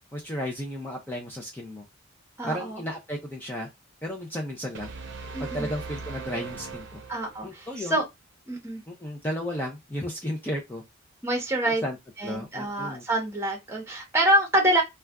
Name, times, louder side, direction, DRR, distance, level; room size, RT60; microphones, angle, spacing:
voice 1, 0.1-1.8 2.4-3.7 4.0-4.9 5.4-7.0 7.4-8.0 8.9-10.8 11.7-12.0 12.2-13.0, equal, 10° left, 0.4 m, -33 dB
voice 2, 2.4-2.8 5.3-5.7 7.1-8.0 8.5-8.8 11.2-11.8 12.2-14.8, right 1 dB, 15° right, 0.9 m, -26 dB
sound 1, 4.7-7.7, right 4 dB, 55° right, 0.6 m, -39 dB
2.4 x 2.2 x 3.3 m
head